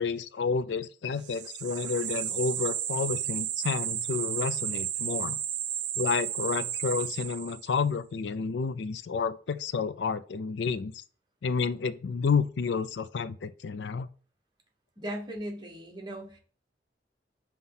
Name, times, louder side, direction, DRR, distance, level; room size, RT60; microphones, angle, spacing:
voice 1, 0.0-5.4 6.0-10.9 11.4-14.1, left 5 dB, 85° left, 0.4 m, -30 dB
sound 1, 1.2-7.8, right 10 dB, 80° right, 0.4 m, -33 dB
voice 2, 15.0-16.4, equal, 25° right, 1.3 m, -38 dB
5.5 x 3.1 x 5.6 m
head